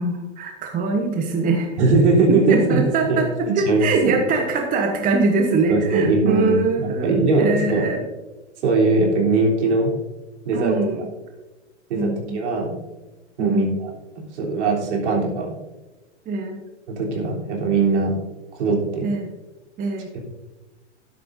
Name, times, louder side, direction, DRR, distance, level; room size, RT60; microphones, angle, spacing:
voice 1, 0.0-1.7 2.3-7.1 7.4-8.0 10.5-11.1 11.9-12.4 13.4-13.8 16.3-16.6 19.0-19.3 19.8-20.1, right 3 dB, 25° right, 3 dB, 1.1 m, -22 dB
voice 2, 1.8-3.2 3.5-4.1 5.7-7.9 8.6-9.9 10.5-10.8 11.9-12.8 13.4-13.9 14.2-15.5 16.9-18.2 18.5-19.1 20.1-20.2, right 3 dB, 70° right, -1 dB, 3.5 m, -20 dB
12.0 x 11.0 x 2.7 m, 1.1 s
hypercardioid pair, 115°, 36 cm